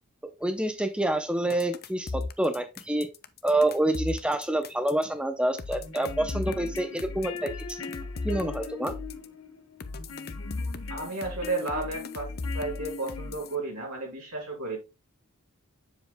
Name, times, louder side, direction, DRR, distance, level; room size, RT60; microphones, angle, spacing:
voice 1, 0.2-3.1 3.4-7.8 8.2-8.9, right 1 dB, 5° right, 7 dB, 0.6 m, -27 dB
sound 1, 1.5-5.0 5.6-9.3 9.8-13.5, left 3 dB, 45° left, 0.6 m, -36 dB
sound 2, 5.7-13.7, left 5 dB, 65° left, 1.2 m, -42 dB
voice 2, 10.9-14.8, right 3 dB, 80° right, -2 dB, 3.7 m, -33 dB
7.6 x 7.1 x 2.2 m, 0.26 s
head